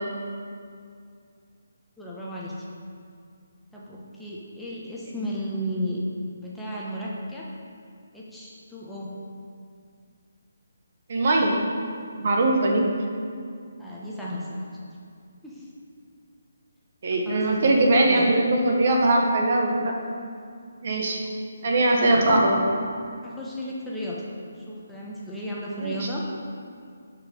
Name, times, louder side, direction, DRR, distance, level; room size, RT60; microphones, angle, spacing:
voice 1, 2.0-2.6 3.7-6.0 6.4-7.5 8.1-9.1 13.8-14.6 15.4-15.6 17.1-18.3 21.2-21.3 21.6-22.4 23.2-24.2 24.5-26.2, equal, ahead, -7 dB, 1.2 m, -34 dB
voice 2, 11.1-11.5 12.2-12.8 17.0-19.9 20.8-21.2 21.6-22.6 25.8-26.1, right 2 dB, 50° right, 1 dB, 1.4 m, -21 dB
11.5 x 5.0 x 5.3 m, 2.3 s
figure-of-eight pair, 145°, 0 cm